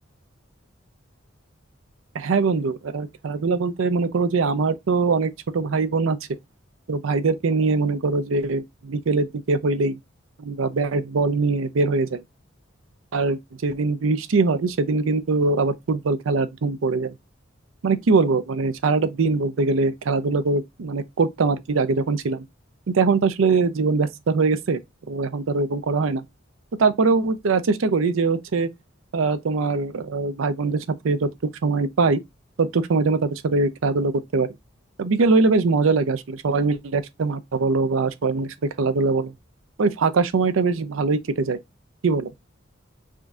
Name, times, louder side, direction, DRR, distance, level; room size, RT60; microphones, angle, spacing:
voice 1, 2.1-6.2 6.9-10.0 10.4-12.2 13.1-17.1 17.8-22.4 22.9-24.8 25.1-26.2 26.8-28.7 29.1-32.2 32.6-34.5 35.0-39.3 39.8-41.6 42.0-42.3, right 4 dB, 80° right, 0.5 m, -22 dB
5.0 x 2.6 x 2.4 m
head